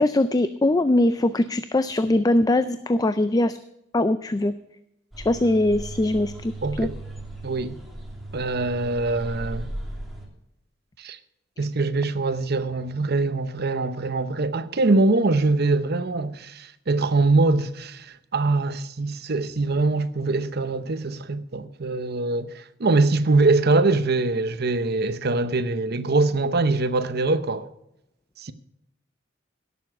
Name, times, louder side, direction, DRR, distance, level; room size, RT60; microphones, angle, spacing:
voice 1, 0.0-3.6 3.9-4.5 5.2-6.9, left 1 dB, 20° left, 0.4 m, -21 dB
sound 1, 5.1-10.3, right 1 dB, ahead, 2.9 m, -37 dB
voice 2, 6.6-6.9 7.4-7.8 8.3-9.7 11.0-11.2 11.6-27.7 28.4-28.5, right 3 dB, 55° right, 0.8 m, -23 dB
17.0 x 7.1 x 5.9 m
head